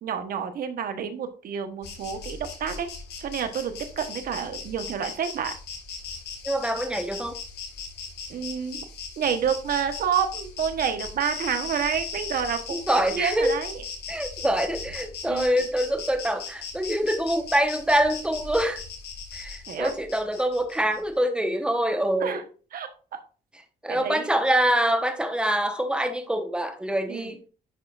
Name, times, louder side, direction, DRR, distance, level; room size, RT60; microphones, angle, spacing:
voice 1, 0.0-2.9 3.2-5.5 8.3-8.8 9.2-12.9 13.1-13.8 15.3-15.5 19.7-19.9 22.2-22.4 22.7-23.2 23.9-24.3 27.1-27.3, right 8 dB, 60° right, 8 dB, 1.2 m, -29 dB
Insect, 1.8-21.0, left 5 dB, 80° left, 1.7 m, -38 dB
voice 2, 6.4-7.4 12.7-13.6 14.1-18.8 19.3-22.4 23.8-27.4, right 1 dB, 5° right, 7 dB, 1.1 m, -25 dB
10.0 x 4.8 x 2.5 m, 0.36 s
cardioid pair, 110°, 17 cm